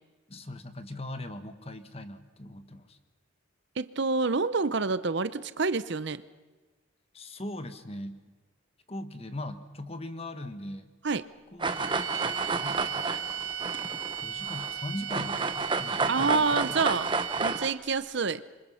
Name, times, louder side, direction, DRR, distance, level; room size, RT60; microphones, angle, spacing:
voice 1, 0.3-3.0 7.1-8.2 8.9-10.9 11.5-12.3 12.5-13.1 14.2-16.8, left 1 dB, 30° left, 9 dB, 1.5 m, -40 dB
voice 2, 3.8-6.2 11.0-11.2 16.1-17.1 17.4-18.4, right 4 dB, 60° right, 15 dB, 0.7 m, -27 dB
sound 1, 11.6-14.8 15.1-17.7, right 3 dB, 25° right, 0.9 m, -31 dB
sound 2, 11.7-17.9, right 9 dB, 75° right, 2.4 m, -36 dB
27.5 x 25.0 x 5.7 m, 1.3 s
head